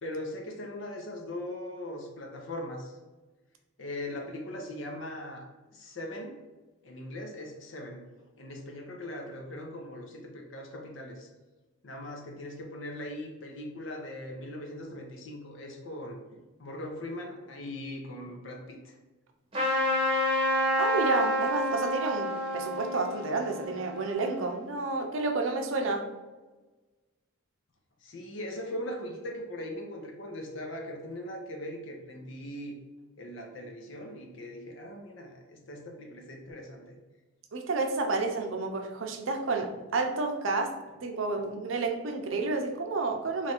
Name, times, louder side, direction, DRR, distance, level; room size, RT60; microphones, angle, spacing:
voice 1, 0.0-3.0 3.8-5.5 5.7-6.3 6.8-8.0 8.4-11.3 11.8-19.0 28.0-32.7 33.2-37.0, left 1 dB, 65° left, 2 dB, 0.7 m, -40 dB
Trumpet, 19.5-24.6, equal, 25° right, 0.8 m, -29 dB
voice 2, 20.8-26.1 37.5-43.5, right 3 dB, 75° right, 4 dB, 0.5 m, -30 dB
3.1 x 2.5 x 4.2 m, 1.2 s
head